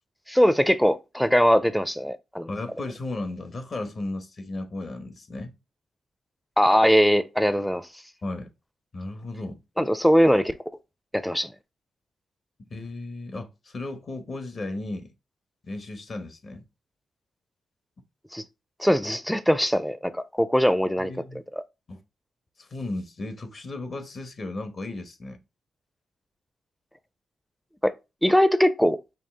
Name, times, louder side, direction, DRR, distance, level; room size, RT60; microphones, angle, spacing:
voice 1, 0.3-2.5 6.6-7.9 9.8-10.6 11.1-11.5 18.3-18.4 18.8-21.1 27.8-27.9 28.2-29.0, equal, 5° left, 0.5 m, -21 dB
voice 2, 2.5-5.5 8.2-8.5 8.9-9.6 12.7-15.1 15.6-16.7 21.0-21.4 21.9-22.0 22.6-25.4, left 2 dB, 50° left, 1.1 m, -35 dB
5.5 x 2.4 x 3.4 m
cardioid pair, 70°, 0 cm